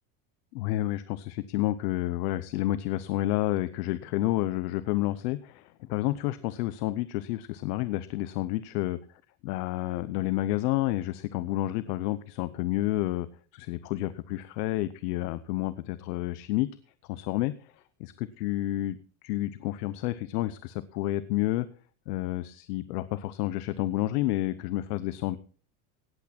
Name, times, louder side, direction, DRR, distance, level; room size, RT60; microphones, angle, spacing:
voice 1, 0.5-9.0 9.4-13.3 13.5-16.7 17.1-17.6 18.0-21.7 22.1-25.4, left 16 dB, 85° left, 15 dB, 0.9 m, -30 dB
17.0 x 8.6 x 4.3 m, 0.43 s
supercardioid pair, 150°, 46 cm